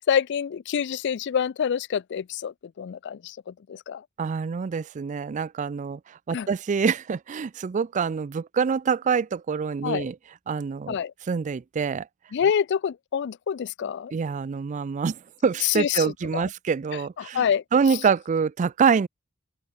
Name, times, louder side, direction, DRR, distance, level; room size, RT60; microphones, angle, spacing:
voice 1, 0.0-4.0 6.3-6.5 9.8-10.1 10.9-11.1 12.3-14.1 15.6-16.4 17.2-18.0, left 8 dB, 55° left, 0.4 m, -27 dB
voice 2, 4.2-6.0 6.3-10.1 10.5-11.0 11.3-12.1 14.1-17.4 17.7-19.1, right 6 dB, 35° right, 0.3 m, -25 dB
open air
head